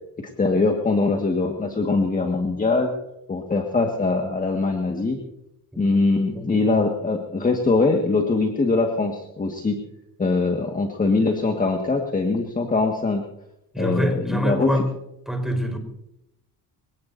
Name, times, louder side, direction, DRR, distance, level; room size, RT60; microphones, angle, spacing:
voice 1, 0.2-2.9 3.3-5.2 5.8-9.8 10.2-13.2 13.8-14.7, left 3 dB, 20° left, 3 dB, 1.8 m, -22 dB
voice 2, 6.3-6.7 13.7-14.9 15.3-15.8, equal, ahead, 3 dB, 4.2 m, -25 dB
25.0 x 18.0 x 2.7 m, 0.83 s
cardioid pair, 115°, 38 cm